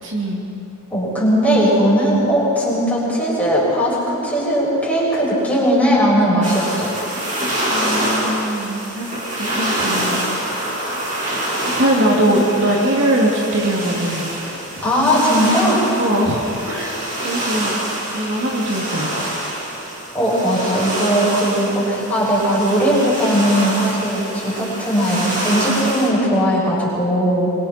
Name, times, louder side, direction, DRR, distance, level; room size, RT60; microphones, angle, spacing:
voice 1, 0.0-0.4 7.7-10.2 10.5-10.6 11.7-14.3 14.7-14.9 16.0-17.8 18.1-19.3, right 1 dB, 55° right, -2 dB, 2.6 m, -21 dB
voice 2, 0.9-6.9 12.0-12.2 14.8-15.9 20.1-27.5, equal, 5° left, -7 dB, 6.6 m, -18 dB
sound 1, 6.4-26.1, right 1 dB, 35° right, 4.9 m, -26 dB
25.0 x 24.0 x 4.4 m, 2.8 s
head